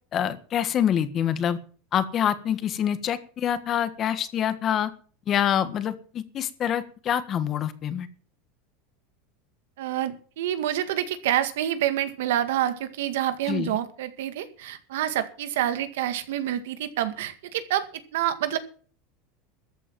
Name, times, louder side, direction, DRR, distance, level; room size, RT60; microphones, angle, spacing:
voice 1, 0.1-1.6 1.9-4.9 5.3-8.1 13.5-13.8, left 9 dB, 35° left, 12 dB, 1.6 m, -26 dB
voice 2, 9.8-18.6, right 12 dB, 85° right, 11 dB, 1.9 m, -27 dB
14.0 x 8.4 x 7.5 m, 0.42 s
supercardioid pair, 140°, 0 cm